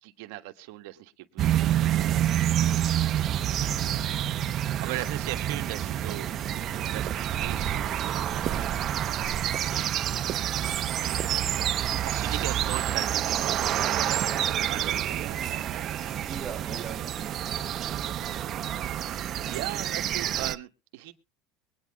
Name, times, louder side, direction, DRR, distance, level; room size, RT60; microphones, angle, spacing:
voice 1, 0.0-2.7 3.2-4.1 4.5-6.3 6.9-8.8 9.6-9.9 10.9-16.1 19.5-21.1, right 17 dB, 70° right, 1.4 m, -40 dB
sound 1, 1.4-20.5, right 11 dB, 35° right, 0.8 m, -28 dB
voice 2, 15.9-18.1, right 6 dB, 20° right, 1.1 m, -42 dB
22.5 x 9.5 x 2.4 m
cardioid pair, 150°, 0 cm